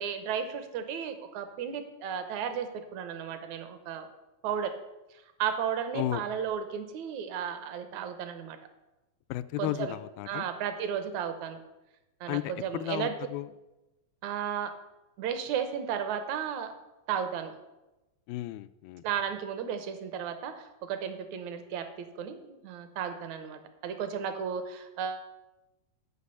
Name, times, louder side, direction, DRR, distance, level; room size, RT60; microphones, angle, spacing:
voice 1, 0.0-4.1 4.4-4.7 5.4-8.6 9.6-10.0 10.3-11.6 12.2-13.1 14.2-14.7 15.2-16.7 17.1-17.5 19.0-21.9 22.2-25.3, right 8 dB, 70° right, 9 dB, 1.9 m, -34 dB
voice 2, 9.3-10.5 12.3-13.5 18.3-19.0, left 14 dB, 85° left, 12 dB, 2.4 m, -34 dB
9.7 x 6.0 x 8.2 m, 1.0 s
omnidirectional pair, 4.2 m